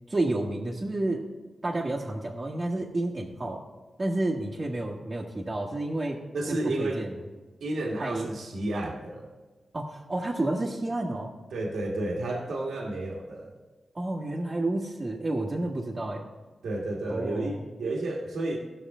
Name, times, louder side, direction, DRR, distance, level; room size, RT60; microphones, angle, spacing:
voice 1, 0.1-1.2 1.6-3.6 4.0-6.2 6.5-7.2 8.0-8.3 9.7-11.3 13.9-16.2 17.1-17.6, right 2 dB, 35° right, -4 dB, 1.4 m, -30 dB
voice 2, 6.3-7.0 7.6-9.3 11.5-13.5 16.6-18.6, right 2 dB, 90° right, -1 dB, 1.6 m, -31 dB
16.5 x 6.3 x 3.7 m, 1.3 s
cardioid pair, 70°, 0 cm